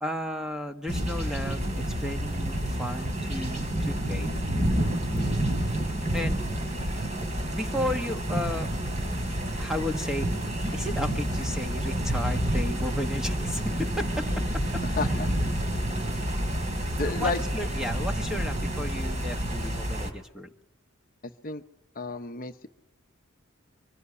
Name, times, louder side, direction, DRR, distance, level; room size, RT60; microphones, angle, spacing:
voice 1, 0.0-4.4 6.1-6.4 7.5-8.7 9.6-10.3 10.7-14.8 17.1-20.5, left 1 dB, 5° right, 5 dB, 1.4 m, -34 dB
sound 1, 0.9-20.1, right 1 dB, 35° right, 3.2 m, -29 dB
voice 2, 15.0-15.3 17.0-17.4 21.4-21.6 21.9-22.7, left 3 dB, 40° left, 7 dB, 0.9 m, -31 dB
25.0 x 18.5 x 9.8 m, 0.81 s
head